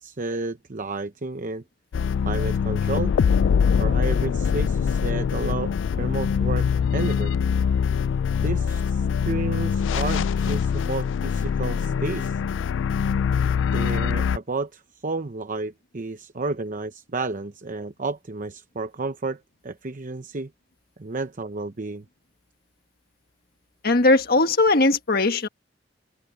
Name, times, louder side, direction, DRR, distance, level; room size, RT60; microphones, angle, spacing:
voice 1, 0.0-1.6 2.2-3.2 3.7-7.3 8.4-12.4 13.7-20.5 21.0-22.0, right 3 dB, 45° right, 0.8 m, -31 dB
sound 1, 1.9-14.4, left 6 dB, 85° left, 0.3 m, -23 dB
voice 2, 23.8-25.5, left 2 dB, 55° left, 1.6 m, -19 dB
head